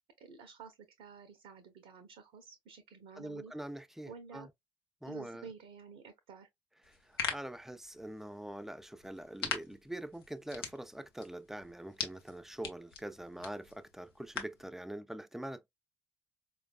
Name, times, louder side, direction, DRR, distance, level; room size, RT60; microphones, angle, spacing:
voice 1, 0.2-3.5 4.1-4.5 5.1-6.5, right 6 dB, 65° right, 0.6 m, -51 dB
voice 2, 3.2-4.5 5.0-5.5 6.8-15.7, right 1 dB, 5° right, 0.4 m, -44 dB
sound 1, 6.8-14.7, left 6 dB, 85° left, 0.6 m, -43 dB
4.5 x 2.2 x 2.3 m
figure-of-eight pair, 45°, 12 cm